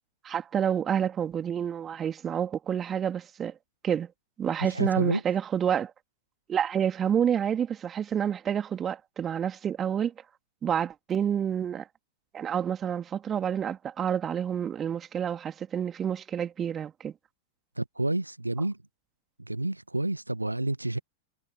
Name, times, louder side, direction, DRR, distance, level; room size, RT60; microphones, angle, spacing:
voice 1, 0.2-3.5 3.8-4.1 4.4-5.9 6.5-10.1 10.6-11.9 12.3-17.1, right 8 dB, 25° right, 2.9 m, -28 dB
voice 2, 4.6-5.2 17.8-18.8 19.4-21.0, right 2 dB, 85° right, 1.1 m, -29 dB
figure-of-eight pair, 90°, 0 cm